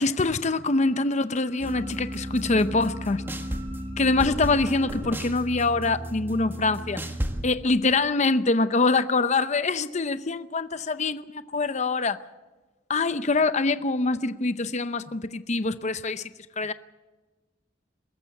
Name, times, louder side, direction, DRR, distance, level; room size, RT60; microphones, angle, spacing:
voice 1, 0.0-3.2 4.0-7.0 7.4-12.2 12.9-16.3 16.6-16.7, left 3 dB, 40° left, 0.7 m, -24 dB
sound 1, 0.9-5.7, right 1 dB, 35° right, 6.4 m, -51 dB
Float and Fly, 1.6-7.4, equal, 10° right, 1.5 m, -33 dB
22.5 x 14.0 x 8.4 m
head